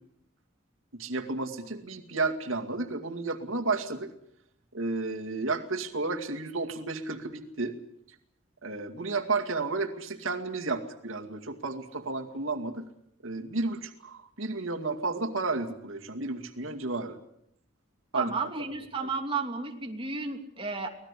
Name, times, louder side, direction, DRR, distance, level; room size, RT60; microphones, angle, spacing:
voice 1, 0.9-4.1 4.7-7.8 8.6-12.8 13.2-17.2 18.1-18.3 18.6-18.7, right 3 dB, 90° right, 4 dB, 2.2 m, -32 dB
voice 2, 18.1-20.9, right 4 dB, 25° right, 3 dB, 2.9 m, -33 dB
24.5 x 19.0 x 8.4 m, 0.73 s
head